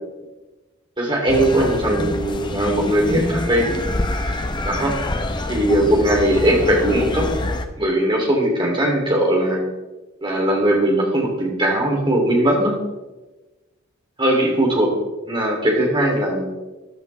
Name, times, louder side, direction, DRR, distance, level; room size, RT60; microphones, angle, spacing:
voice 1, 1.0-3.7 4.6-4.9 5.5-7.3 7.8-9.7 10.2-12.8 14.2-14.9 15.2-16.5, right 1 dB, 25° right, -1 dB, 3.1 m, -19 dB
sound 1, 1.3-7.7, left 1 dB, 20° left, 0.8 m, -25 dB
14.5 x 10.5 x 3.4 m, 1.1 s
head